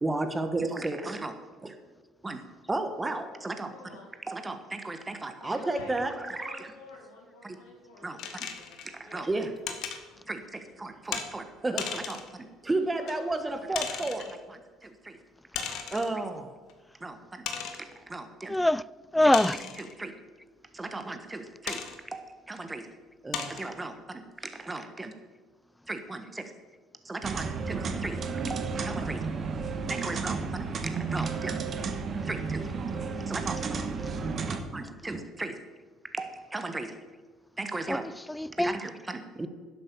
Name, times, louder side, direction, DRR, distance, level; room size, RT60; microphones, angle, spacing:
voice 1, 0.0-1.4 1.6-1.8 2.2-2.4 2.7-3.7 4.3-6.6 7.4-7.6 8.0-8.5 8.8-9.5 10.3-15.2 15.9-16.5 17.0-17.4 17.8-18.6 19.8-20.1 20.7-22.9 23.2-25.1 25.9-26.5 27.0-28.2 28.5-29.2 29.9-31.6 32.3-32.6 33.3-34.4 34.7-35.6 36.1-36.9 37.6-38.1 38.6-39.5, right 2 dB, 20° right, 1.4 m, -34 dB
voice 2, 3.6-4.1 5.4-9.3 10.1-10.9 12.6-13.2, left 2 dB, 80° left, 2.4 m, -50 dB
sound 1, 8.2-8.9 9.7-10.0 11.1-11.3 11.8-12.3 13.1-13.2 13.7-14.3 15.5-16.2 16.7-16.8 17.5-17.9 19.3-19.9 21.7-22.0 22.6-22.7 23.3-23.7, left 7 dB, 65° left, 1.5 m, -36 dB
voice 3, 18.5-18.8 19.1-19.6 37.9-38.8, left 1 dB, 10° left, 0.3 m, -24 dB
sound 2, 27.2-34.6, right 4 dB, 45° right, 1.3 m, -32 dB
11.0 x 7.7 x 6.9 m
hypercardioid pair, 70°, 0 cm